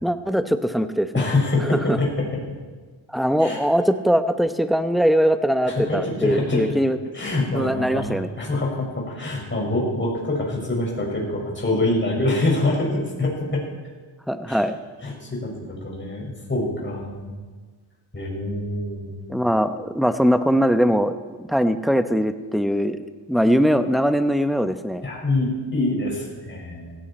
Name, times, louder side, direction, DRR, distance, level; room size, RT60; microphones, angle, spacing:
voice 1, 0.0-1.2 1.9-2.0 3.1-7.0 7.5-8.3 14.3-14.8 19.3-21.1 21.5-23.0 23.3-25.0, equal, ahead, 9 dB, 0.9 m, -21 dB
voice 2, 1.1-2.4 3.4-3.6 5.7-6.7 7.1-13.7 14.5-14.6 15.0-17.3 18.1-19.2 25.0-27.0, left 2 dB, 25° left, -2 dB, 5.9 m, -25 dB
17.0 x 16.5 x 4.4 m, 1.4 s
cardioid pair, 80°, 44 cm